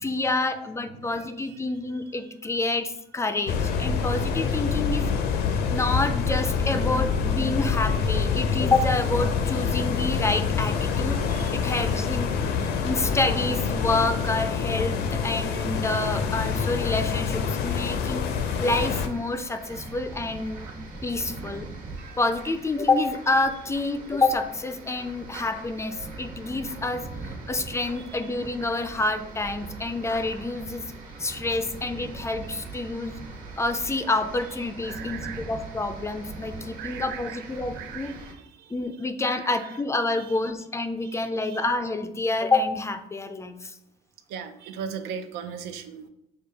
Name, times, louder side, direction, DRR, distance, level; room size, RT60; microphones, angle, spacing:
voice 1, 0.0-5.1 5.7-11.2 11.5-12.3 12.8-18.3 18.6-20.7 21.0-21.7 22.2-30.8 31.2-33.2 33.6-38.1 38.7-43.7, left 2 dB, 15° left, 8 dB, 0.4 m, -28 dB
sound 1, 3.5-19.1, left 6 dB, 70° left, 0.6 m, -26 dB
sound 2, 18.5-38.3, right 3 dB, 55° right, 1.3 m, -41 dB
voice 2, 34.8-35.5 36.8-37.4 37.7-38.4 39.3-39.5 41.1-41.2 41.5-41.6 44.3-46.1, right 7 dB, 85° right, 9 dB, 0.5 m, -37 dB
6.7 x 2.3 x 3.3 m, 0.84 s
cardioid pair, 110°, 17 cm